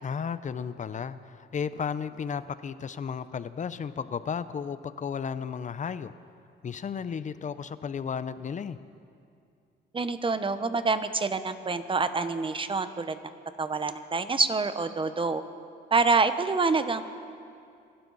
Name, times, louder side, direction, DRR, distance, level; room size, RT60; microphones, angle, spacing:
voice 1, 0.0-6.1 6.6-8.8, left 6 dB, 40° left, 14 dB, 0.7 m, -34 dB
voice 2, 9.9-13.2 13.6-15.4 15.9-17.0, right 4 dB, 25° right, 11 dB, 0.9 m, -26 dB
25.5 x 12.5 x 4.1 m, 2.4 s
cardioid pair, 90°, 20 cm